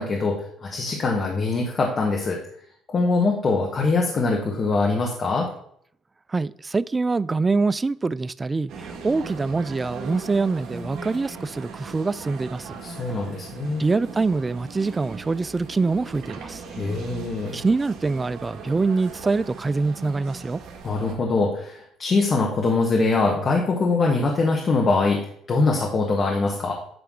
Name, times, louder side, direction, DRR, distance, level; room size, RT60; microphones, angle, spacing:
voice 1, 0.0-2.4 2.9-5.5 12.8-13.8 16.6-17.6 20.8-25.2 25.5-26.7, left 3 dB, 40° left, 1.5 m, -23 dB
voice 2, 6.3-12.8 13.8-16.6 17.5-20.6, right 3 dB, 20° right, 0.3 m, -24 dB
sound 1, 8.7-21.1, right 5 dB, 65° right, 1.7 m, -39 dB
9.4 x 3.4 x 6.4 m
cardioid pair, 100°, 0 cm